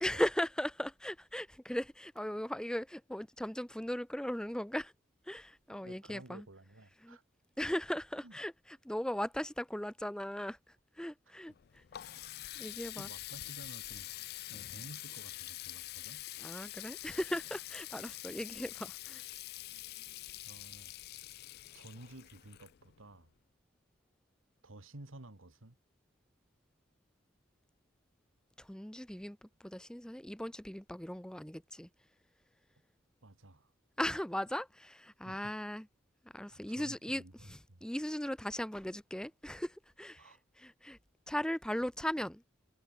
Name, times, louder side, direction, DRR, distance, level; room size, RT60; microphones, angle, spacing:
voice 1, 0.0-4.9 5.2-6.4 7.0-7.2 7.6-12.1 12.6-13.1 16.4-19.3 28.6-31.9 34.0-35.9 36.3-41.0 41.3-42.4, equal, 5° left, 0.6 m, -38 dB
voice 2, 5.7-7.2 8.2-8.4 11.5-11.6 13.0-14.1 14.5-16.3 20.4-20.9 21.7-23.3 24.6-25.8 33.2-33.7 35.2-35.5 36.5-37.8 40.2-40.4 41.3-41.4, right 2 dB, 85° right, 2.1 m, -53 dB
Water tap faucet, 11.5-23.2, left 16 dB, 50° left, 0.4 m, -46 dB
head